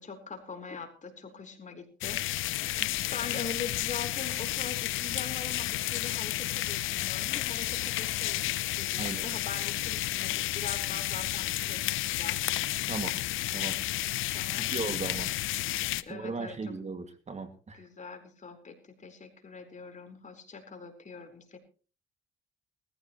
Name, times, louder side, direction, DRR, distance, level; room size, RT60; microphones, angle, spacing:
voice 1, 0.0-12.6 14.3-14.7 16.1-16.7 17.7-21.6, left 5 dB, 40° left, 4 dB, 4.2 m, -43 dB
sound 1, 2.0-16.0, left 15 dB, 85° left, 0.7 m, -31 dB
voice 2, 14.7-15.3 16.1-17.8, right 4 dB, 35° right, 8 dB, 2.2 m, -36 dB
20.5 x 14.5 x 3.1 m, 0.38 s
cardioid pair, 90°, 20 cm